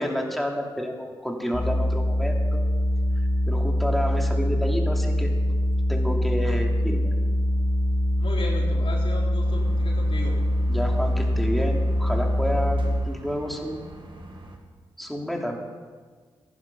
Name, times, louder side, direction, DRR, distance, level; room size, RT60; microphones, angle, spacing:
voice 1, 0.0-2.7 3.5-5.3 5.9-7.1 10.7-13.9 15.0-15.6, equal, ahead, 1 dB, 3.0 m, -30 dB
sound 1, 1.5-13.0, left 1 dB, 40° left, 3.5 m, -23 dB
voice 2, 8.2-10.4, left 2 dB, 60° left, -2 dB, 3.9 m, -35 dB
sound 2, 9.4-14.6, right 1 dB, 50° right, 2.3 m, -43 dB
15.0 x 11.0 x 5.5 m, 1.5 s
supercardioid pair, 40°, 10 cm